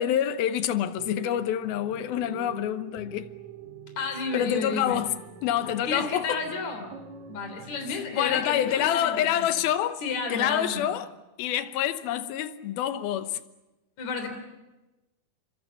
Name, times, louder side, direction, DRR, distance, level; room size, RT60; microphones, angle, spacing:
voice 1, 0.0-3.3 4.3-5.2 5.4-6.4 7.9-10.0 10.3-11.1 11.4-13.4, left 11 dB, 80° left, 2.9 m, -27 dB
sound 1, 0.8-9.2, right 6 dB, 55° right, 3.5 m, -45 dB
voice 2, 4.0-5.0 5.8-6.9 7.3-9.5 10.0-10.9 14.0-14.4, left 4 dB, 50° left, 4.6 m, -32 dB
28.5 x 25.0 x 7.1 m
omnidirectional pair, 4.2 m